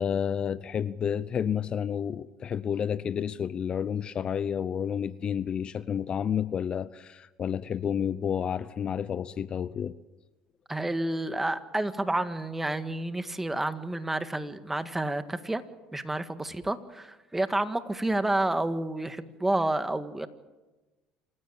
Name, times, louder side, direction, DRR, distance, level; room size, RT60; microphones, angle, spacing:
voice 1, 0.0-10.0, left 8 dB, 40° left, 17 dB, 0.7 m, -30 dB
voice 2, 10.7-15.6 15.9-20.3, right 2 dB, 10° right, 10 dB, 1.8 m, -29 dB
27.5 x 16.0 x 8.8 m, 1.1 s
supercardioid pair, 90°, 2 cm